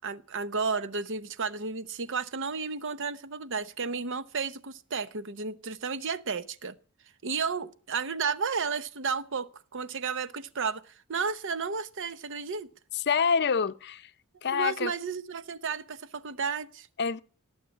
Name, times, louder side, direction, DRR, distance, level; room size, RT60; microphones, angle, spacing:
voice 1, 0.0-6.7 7.2-12.7 14.5-16.9, right 5 dB, 60° right, 0.9 m, -33 dB
voice 2, 12.9-14.1 14.4-14.9 17.0-17.2, left 6 dB, 50° left, 0.6 m, -26 dB
18.0 x 7.4 x 9.6 m
head